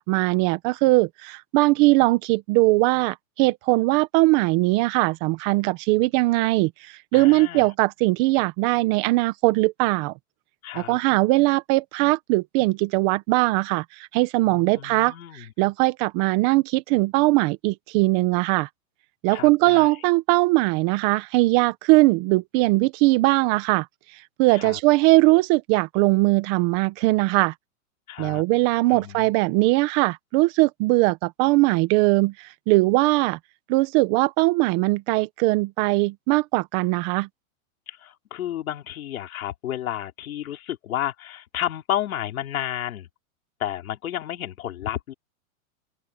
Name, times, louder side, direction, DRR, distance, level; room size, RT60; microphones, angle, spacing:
voice 1, 0.0-10.1 10.7-18.7 19.2-23.9 24.4-27.5 28.2-33.4 33.7-37.3, right 22 dB, 35° right, 1.3 m, -20 dB
voice 2, 7.1-7.7 10.6-11.0 14.5-15.5 19.3-19.9 24.5-24.8 28.1-28.4 28.9-29.3 37.9-43.1 43.6-45.1, left 11 dB, 80° left, 3.7 m, -31 dB
open air
supercardioid pair, 155°, 41 cm